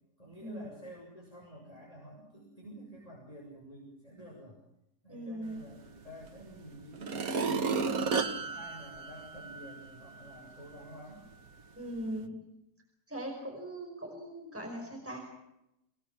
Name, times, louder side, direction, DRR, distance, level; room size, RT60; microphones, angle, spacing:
voice 1, 0.2-4.6 5.0-11.2, right 1 dB, 20° left, -3 dB, 6.8 m, -49 dB
voice 2, 5.1-5.7 11.8-12.4 13.1-15.2, right 1 dB, 10° right, 1 dB, 5.2 m, -40 dB
sound 1, 6.2-6.3 6.9-9.8 10.3-10.4, right 5 dB, 60° right, 1.7 m, -32 dB
25.5 x 19.5 x 7.6 m, 0.85 s
omnidirectional pair, 1.7 m